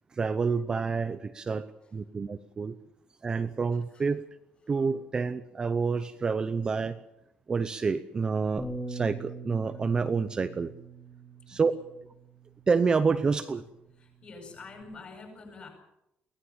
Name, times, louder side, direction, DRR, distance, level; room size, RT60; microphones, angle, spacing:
voice 1, 0.1-2.8 3.2-4.2 4.7-7.0 7.5-10.7 11.5-11.7 12.7-13.6, right 5 dB, 25° right, 10 dB, 0.8 m, -28 dB
Bass guitar, 8.6-14.8, right 2 dB, 5° left, 2.7 m, -43 dB
voice 2, 14.2-15.7, left 3 dB, 35° left, 3 dB, 8.0 m, -46 dB
23.0 x 18.0 x 7.2 m, 0.83 s
cardioid pair, 175°, 3 cm